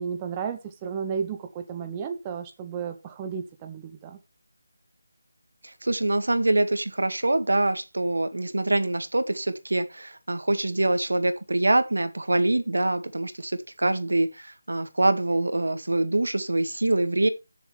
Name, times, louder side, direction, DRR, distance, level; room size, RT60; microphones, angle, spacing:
voice 1, 0.0-4.2, right 6 dB, 15° right, 0.8 m, -33 dB
voice 2, 5.6-17.3, right 2 dB, 85° right, 1.9 m, -25 dB
13.5 x 7.2 x 3.3 m
figure-of-eight pair, 170°, 0 cm